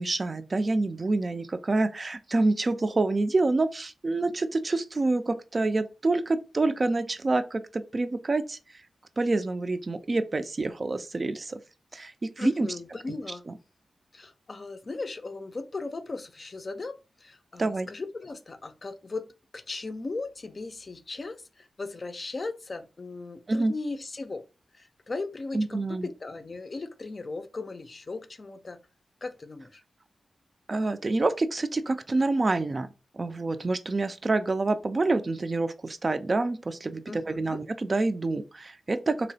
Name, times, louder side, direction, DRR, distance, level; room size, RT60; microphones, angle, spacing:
voice 1, 0.0-8.8 9.2-11.6 11.9-12.7 13.5-13.6 17.6-17.9 23.5-23.7 25.5-26.1 30.7-32.9 33.1-39.3, right 2 dB, 45° right, 0.3 m, -27 dB
voice 2, 12.4-13.4 14.1-19.3 19.5-24.4 24.8-28.8 29.2-29.8 37.1-37.6, left 3 dB, 50° left, 0.4 m, -37 dB
2.9 x 2.0 x 2.6 m
cardioid pair, 50°, 0 cm